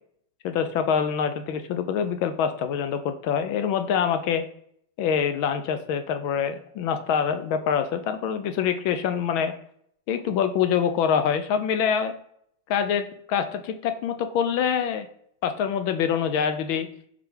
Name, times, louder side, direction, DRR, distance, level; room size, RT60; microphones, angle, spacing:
voice 1, 0.4-4.4 5.0-9.5 10.1-12.1 12.7-15.1 15.4-16.9, left 7 dB, 55° left, 9 dB, 0.3 m, -25 dB
3.4 x 3.3 x 3.2 m, 0.69 s
hypercardioid pair, 100°, 0 cm